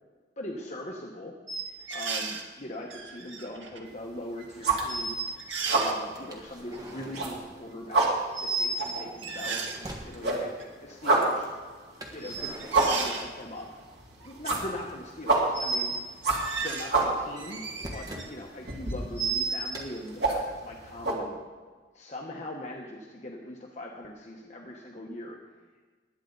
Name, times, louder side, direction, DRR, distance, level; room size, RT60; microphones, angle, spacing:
voice 1, 0.4-1.3 1.9-5.2 5.7-11.5 12.1-13.7 14.2-15.9 16.6-17.6 17.9-21.4 21.9-25.4, left 1 dB, 40° left, -1 dB, 1.1 m, -41 dB
sound 1, 1.5-2.4 2.9-3.9 4.4-4.5 4.9-5.9 6.7-7.0 8.3-8.9 9.2-9.8 10.6-10.7 12.2-13.2 14.2-14.5 15.5-16.0 16.3-17.0 17.4-18.3 18.7-19.8, right 4 dB, 85° right, 1.7 m, -33 dB
sound 2, 3.9-4.2 4.5-5.3 5.5-6.0 6.4-6.5 6.9-9.9 10.2-21.1, right 3 dB, 60° right, 2.7 m, -28 dB
sound 3, 6.1-7.5 9.0-10.2 12.0-13.7 13.9-14.8 15.0-18.3 19.7-19.9, right 1 dB, 20° right, 1.7 m, -45 dB
19.5 x 10.0 x 4.0 m, 1.4 s
head